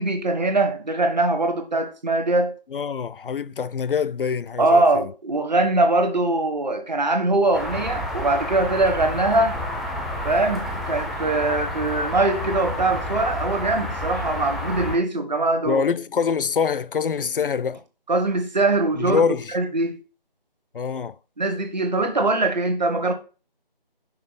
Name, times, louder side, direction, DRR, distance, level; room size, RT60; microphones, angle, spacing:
voice 1, 0.0-2.5 4.6-9.6 10.2-15.8 18.1-19.2 19.5-20.0 21.4-23.1, right 2 dB, 50° right, 1.1 m, -22 dB
voice 2, 2.7-5.1 15.7-17.8 19.0-19.5 20.7-21.2, left 6 dB, 65° left, 0.4 m, -25 dB
sound 1, 7.5-15.0, left 1 dB, ahead, 0.4 m, -30 dB
5.5 x 4.3 x 4.1 m
figure-of-eight pair, 170°, 29 cm